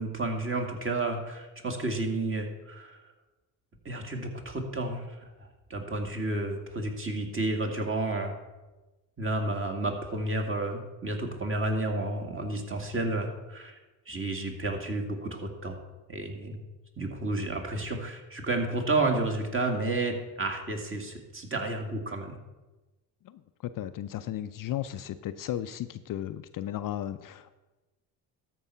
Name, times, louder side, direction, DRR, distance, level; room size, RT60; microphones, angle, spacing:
voice 1, 0.0-3.0 3.9-5.2 5.7-8.3 9.2-13.8 14.1-15.8 16.1-16.6 17.0-22.4, right 2 dB, 30° right, 2 dB, 2.1 m, -31 dB
voice 2, 23.7-27.5, left 12 dB, 50° left, 11 dB, 0.5 m, -35 dB
13.5 x 4.7 x 5.6 m, 1.1 s
supercardioid pair, 75°, 43 cm